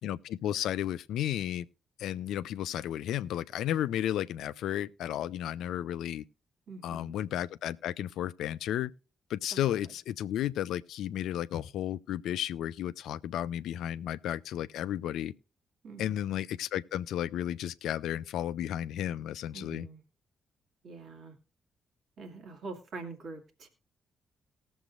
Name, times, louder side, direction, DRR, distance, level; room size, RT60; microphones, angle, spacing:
voice 1, 0.0-1.7 2.0-6.2 6.8-8.9 9.3-15.3 16.0-19.9, left 11 dB, 70° left, 0.4 m, -33 dB
voice 2, 6.7-7.1 15.8-16.1 19.5-20.0 20.8-21.4 22.2-23.7, right 3 dB, 60° right, 2.1 m, -44 dB
19.0 x 7.1 x 2.4 m
hypercardioid pair, 40°, 0 cm